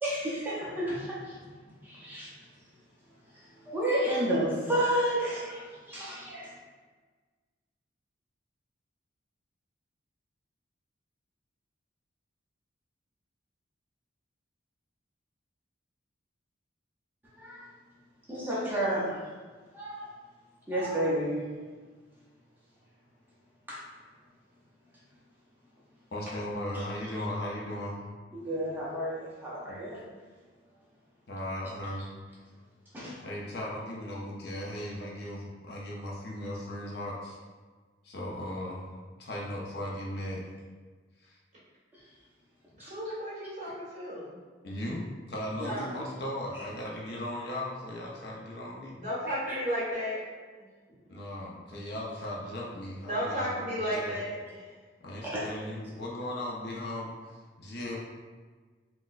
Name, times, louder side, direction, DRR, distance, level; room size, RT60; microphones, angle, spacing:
voice 1, 0.0-1.4 1.8-2.3 3.7-5.6 5.9-6.5 17.4-17.6 18.3-19.2 19.7-20.1 20.7-21.5 23.7-23.8 28.3-30.0 32.9-33.1 42.8-42.9 49.3-49.6 55.2-55.4, right 1 dB, 10° right, -8 dB, 0.6 m, -31 dB
voice 2, 26.1-28.0 29.7-29.8 31.3-32.1 33.2-37.4 38.0-40.4 41.2-41.4 44.6-49.0 51.1-54.2 55.0-58.0, left 1 dB, 55° left, -3 dB, 0.5 m, -37 dB
voice 3, 42.8-44.4 45.6-45.9 48.9-50.2 53.0-54.7, equal, 40° right, -9 dB, 1.2 m, -33 dB
4.0 x 2.1 x 2.4 m, 1.4 s
head